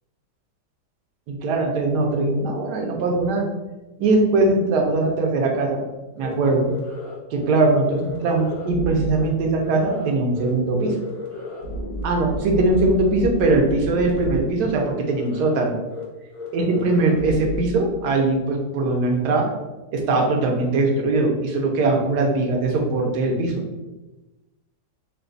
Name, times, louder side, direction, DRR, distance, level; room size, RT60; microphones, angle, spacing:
voice 1, 1.3-3.4 4.0-5.8 6.2-6.7 7.3-10.9 12.0-15.8 16.5-19.4 19.9-23.5, right 2 dB, 70° right, 1 dB, 1.2 m, -21 dB
sound 1, 6.2-6.3 6.7-7.2 7.4-7.6 7.9-9.3 9.6-10.1 10.4-10.5 10.8-14.4 14.7-14.8 15.1-15.6 15.9-16.0 16.3-17.6, left 1 dB, 35° left, 0.5 m, -32 dB
4.0 x 2.3 x 3.8 m, 1.1 s
omnidirectional pair, 2.0 m